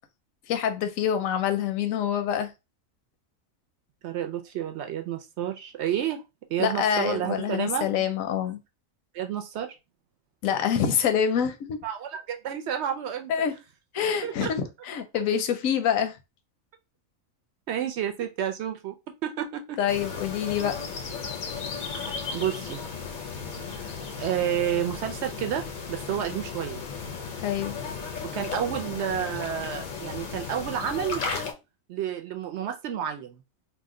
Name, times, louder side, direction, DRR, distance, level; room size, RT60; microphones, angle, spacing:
voice 1, 0.5-2.5 6.6-8.6 10.4-11.8 13.3-13.5 13.9-16.2 19.8-20.8 27.4-27.8, left 8 dB, 80° left, 1.0 m, -26 dB
voice 2, 4.0-6.2 6.5-8.1 9.1-9.8 11.8-13.5 14.2-14.5 17.7-19.0 19.2-19.8 22.3-22.8 23.6-26.8 28.2-31.2 31.9-33.4, right 10 dB, 65° right, 0.7 m, -30 dB
sound 1, 19.9-31.5, left 5 dB, 55° left, 0.5 m, -35 dB
2.8 x 2.1 x 3.6 m
omnidirectional pair, 1.4 m